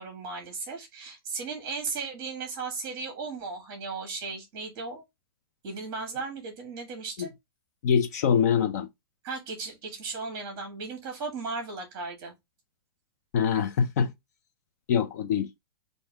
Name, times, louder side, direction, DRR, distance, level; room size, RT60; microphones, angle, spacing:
voice 1, 0.0-5.0 5.6-7.3 9.2-12.3, right 4 dB, 25° right, 1.5 m, -36 dB
voice 2, 7.8-8.9 13.3-14.1 14.9-15.5, left 7 dB, 40° left, 0.4 m, -24 dB
3.4 x 2.6 x 4.3 m
supercardioid pair, 180°, 13 cm